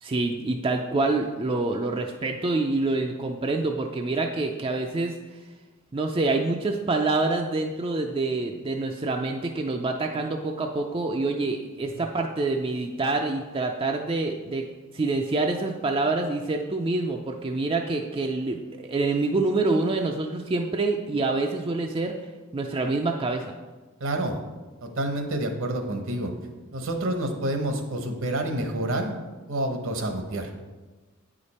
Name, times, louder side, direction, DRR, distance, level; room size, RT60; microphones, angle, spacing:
voice 1, 0.0-5.1 5.9-14.6 14.9-22.1 22.5-23.5, right 3 dB, 25° right, 2 dB, 0.4 m, -26 dB
voice 2, 24.0-24.4 24.8-26.3 26.7-29.2 29.5-30.5, right 1 dB, 65° right, 5 dB, 0.9 m, -28 dB
8.8 x 5.0 x 4.2 m, 1.3 s
head